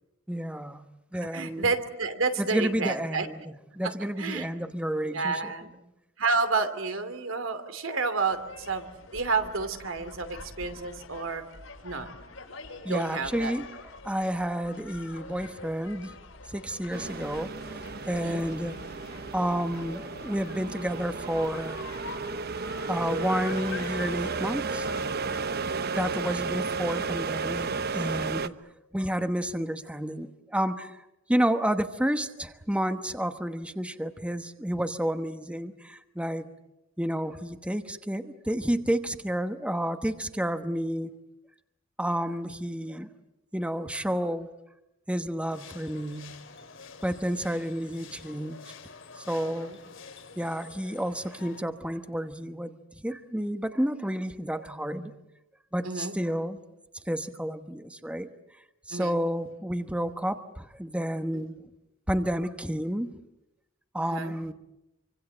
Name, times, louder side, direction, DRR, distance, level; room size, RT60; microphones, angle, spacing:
voice 1, 0.3-1.7 2.4-3.4 3.7-5.5 12.8-13.7 14.0-16.1 16.5-18.8 19.1-21.9 22.9-25.2 25.9-28.6 28.9-31.0 31.3-36.5 37.0-41.1 42.0-43.1 43.5-44.5 45.1-46.3 47.0-48.7 49.2-49.7 50.4-52.8 53.0-55.2 55.7-56.6 57.1-58.3 58.9-61.6 62.1-63.2 63.9-64.5, equal, 5° right, 1.1 m, -30 dB
voice 2, 1.3-3.3 4.2-4.5 5.0-5.8 6.2-8.8 9.1-11.4 11.8-12.1 12.9-13.5 18.1-18.4 25.5-25.9 49.3-49.8 55.8-56.2 58.9-59.2 61.3-61.4 64.0-64.4, right 4 dB, 80° right, 2.9 m, -30 dB
sound 1, 8.3-25.4, left 3 dB, 85° left, 5.7 m, -46 dB
sound 2, 16.9-28.5, right 4 dB, 50° right, 1.0 m, -33 dB
sound 3, 45.5-51.6, left 5 dB, 65° left, 2.6 m, -48 dB
26.5 x 25.5 x 7.9 m
head